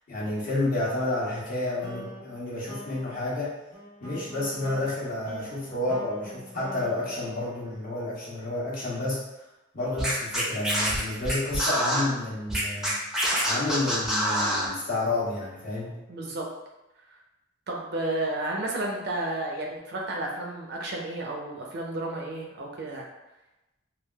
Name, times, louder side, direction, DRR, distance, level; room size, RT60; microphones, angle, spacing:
voice 1, 0.1-3.5 4.0-9.2 9.7-12.9 13.5-16.0, left 2 dB, 45° left, -7 dB, 1.0 m, -30 dB
sound 1, 1.8-8.2, equal, 85° left, 1.2 m, -45 dB
Scratching (performance technique), 10.0-12.0 12.5-14.7, equal, ahead, 0.5 m, -26 dB
voice 2, 16.1-16.4 17.7-23.0, right 2 dB, 55° right, -1 dB, 0.5 m, -32 dB
3.3 x 2.3 x 2.2 m, 0.98 s
head